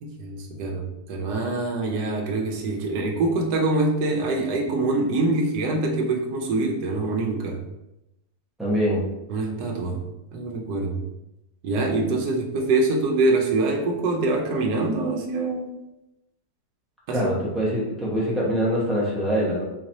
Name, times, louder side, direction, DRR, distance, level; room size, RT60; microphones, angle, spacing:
voice 1, 0.0-7.6 9.3-10.0 10.3-11.0 11.6-15.8 17.1-17.3, right 2 dB, 85° right, 0 dB, 1.2 m, -24 dB
voice 2, 8.6-9.0 17.1-19.6, equal, ahead, -6 dB, 0.7 m, -24 dB
3.9 x 2.9 x 2.7 m, 0.91 s
omnidirectional pair, 1.7 m